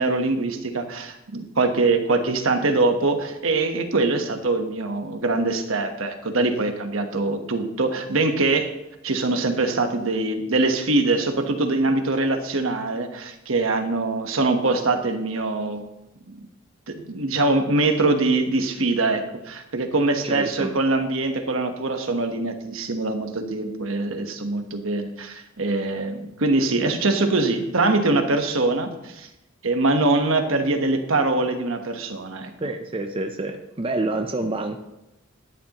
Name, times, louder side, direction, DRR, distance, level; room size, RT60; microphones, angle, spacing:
voice 1, 0.0-8.7 9.0-15.8 16.3-16.4 16.9-29.3 29.6-32.5, right 2 dB, 70° right, 6 dB, 1.2 m, -23 dB
voice 2, 20.2-20.7 32.6-34.8, right 2 dB, 25° right, 5 dB, 0.6 m, -27 dB
13.0 x 10.0 x 3.0 m, 0.91 s
head